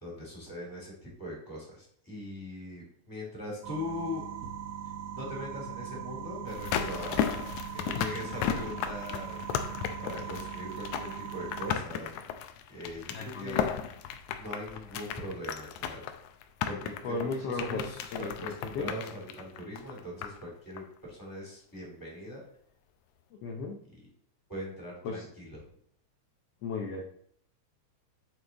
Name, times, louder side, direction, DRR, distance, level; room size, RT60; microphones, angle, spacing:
voice 1, 0.0-4.2 5.1-7.5 7.7-9.4 10.0-12.1 12.7-13.7 14.3-16.1 16.7-22.4 24.5-25.6, left 1 dB, 5° left, -3 dB, 2.5 m, -40 dB
sound 1, 3.6-11.8, right 9 dB, 80° right, 2.4 m, -40 dB
sound 2, 6.5-20.5 20.8-20.9, left 9 dB, 85° left, 2.0 m, -35 dB
voice 2, 13.1-13.7 17.0-17.8 18.1-18.3 18.8-18.9 23.4-23.8 25.0-25.3 26.6-27.0, left 4 dB, 70° left, 1 dB, 1.6 m, -35 dB
7.3 x 4.8 x 3.8 m, 0.65 s
omnidirectional pair, 3.4 m